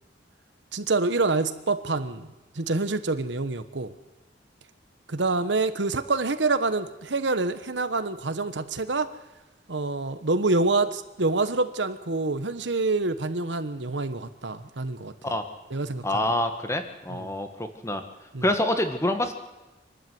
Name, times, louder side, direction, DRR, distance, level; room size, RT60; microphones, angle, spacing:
voice 1, 0.7-3.9 5.1-9.1 9.7-15.1 15.7-16.2 17.1-17.3 18.3-18.4, right 3 dB, 75° right, 11 dB, 1.2 m, -26 dB
voice 2, 16.0-18.0 18.4-19.3, left 1 dB, 15° left, 7 dB, 1.8 m, -26 dB
25.0 x 12.5 x 9.5 m, 1.0 s
head